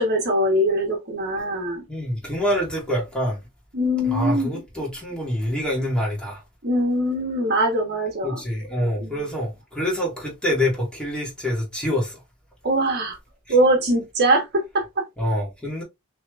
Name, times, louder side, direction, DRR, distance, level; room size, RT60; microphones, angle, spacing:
voice 1, 0.0-1.8 3.7-4.6 6.6-8.4 9.0-9.3 12.6-13.2 13.5-15.1, right 1 dB, 50° right, 1.3 m, -22 dB
voice 2, 1.9-3.4 4.0-6.4 8.2-12.2 15.2-15.8, left 1 dB, 5° left, 2.0 m, -26 dB
5.9 x 3.3 x 2.5 m
head